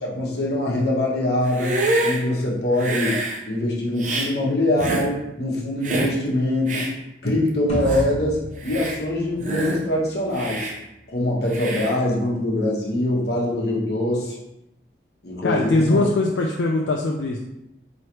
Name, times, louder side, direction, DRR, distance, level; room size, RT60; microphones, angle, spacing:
voice 1, 0.0-3.1 3.4-6.9 7.2-10.7 11.1-14.4 15.2-16.0, left 1 dB, 60° left, -4 dB, 1.1 m, -23 dB
Hiss, 1.5-2.2 2.8-3.4 4.0-4.3 4.8-5.1 5.8-6.2 6.7-6.9 7.5-7.6 7.8-8.1 8.6-9.0 9.4-9.8 10.3-10.8 11.5-11.9, right 2 dB, 40° right, 0.5 m, -26 dB
sound 1, 7.7-10.2, equal, 35° left, 1.0 m, -31 dB
voice 2, 15.4-17.4, left 2 dB, 80° left, -1 dB, 0.4 m, -21 dB
4.7 x 3.1 x 3.0 m, 0.89 s
head